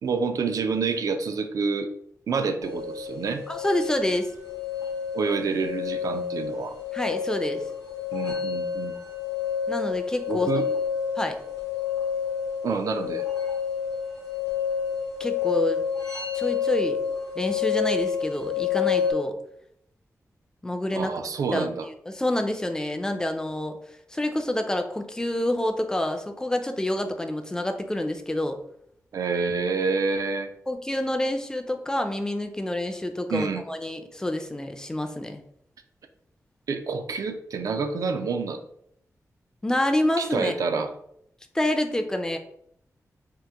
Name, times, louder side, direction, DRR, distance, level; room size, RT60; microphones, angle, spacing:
voice 1, 0.0-1.9 2.3-3.4 5.1-6.8 8.1-9.0 10.3-10.7 12.6-13.2 20.9-21.9 29.1-30.5 33.3-33.6 36.7-38.6 40.2-40.9, right 4 dB, 75° right, 8 dB, 0.3 m, -28 dB
sound 1, 2.6-19.1, left 7 dB, 85° left, 0.8 m, -29 dB
voice 2, 3.5-4.3 6.9-7.6 9.7-10.6 11.2-11.4 15.2-15.8 16.3-17.0 17.4-19.3 20.6-21.1 21.5-23.8 24.1-28.6 30.7-35.4 39.6-40.5 41.5-42.4, left 1 dB, 10° left, 5 dB, 0.3 m, -27 dB
2.9 x 2.1 x 3.4 m, 0.72 s
wide cardioid pair, 120°, 6 cm